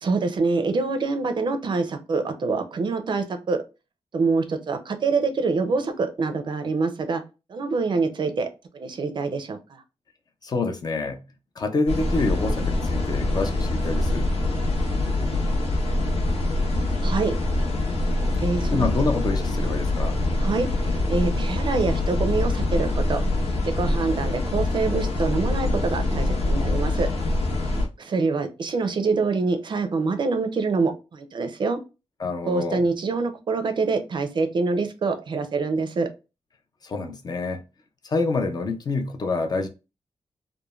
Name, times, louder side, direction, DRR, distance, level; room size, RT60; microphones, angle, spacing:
voice 1, 0.0-3.6 4.1-7.2 7.5-8.5 8.7-9.8 17.0-17.3 18.4-18.9 20.4-23.2 23.8-27.1 28.0-31.8 32.5-36.1, right 4 dB, 45° right, 0.4 m, -25 dB
voice 2, 10.4-11.2 11.6-14.3 18.7-20.3 32.2-32.8 36.8-37.6 38.0-39.7, left 3 dB, 40° left, 0.4 m, -27 dB
sound 1, 11.9-27.9, left 2 dB, 75° left, 0.8 m, -24 dB
3.0 x 2.1 x 2.2 m
wide cardioid pair, 180°, 11 cm